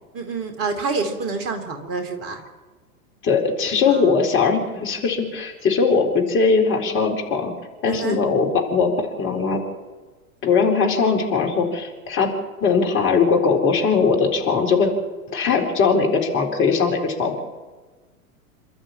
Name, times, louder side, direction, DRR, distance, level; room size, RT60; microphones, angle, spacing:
voice 1, 0.1-2.4 3.9-4.1 7.9-8.2, right 4 dB, 30° right, 6 dB, 2.8 m, -27 dB
voice 2, 3.2-8.9 9.2-9.6 10.4-12.3 12.6-14.9 15.3-17.4, left 5 dB, 25° left, 1 dB, 4.2 m, -20 dB
28.0 x 12.5 x 8.7 m, 1.3 s
figure-of-eight pair, 95°, 44 cm